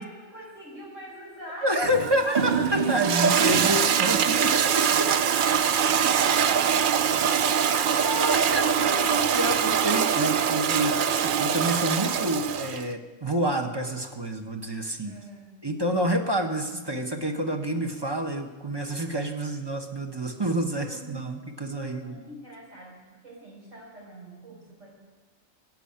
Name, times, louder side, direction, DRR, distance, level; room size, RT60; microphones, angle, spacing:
voice 1, 0.0-1.7 2.7-2.8 15.0-15.5 20.3-21.3 21.8-24.9, right 1 dB, 80° right, -3 dB, 5.7 m, -45 dB
voice 2, 1.6-5.1 6.0-6.3 7.6-15.2 15.6-22.2, right 1 dB, 20° right, 4 dB, 1.1 m, -28 dB
Toilet flush, 1.8-12.9, right 7 dB, 55° right, 0.6 m, -23 dB
16.0 x 7.6 x 8.8 m, 1.3 s
omnidirectional pair, 1.3 m